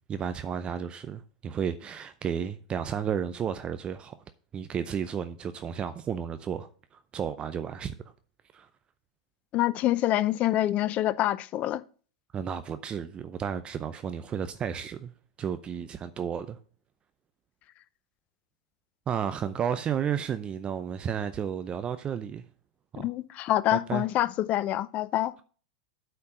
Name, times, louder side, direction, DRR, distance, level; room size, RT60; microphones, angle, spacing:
voice 1, 0.1-4.2 4.5-7.9 8.5-8.7 12.3-15.1 15.4-16.6 19.1-22.5 22.9-23.1 23.7-24.0, right 8 dB, 30° right, 0.5 m, -32 dB
voice 2, 9.5-11.8 23.0-25.3, left 14 dB, 40° left, 0.5 m, -26 dB
8.4 x 4.6 x 6.4 m
hypercardioid pair, 95°, 4 cm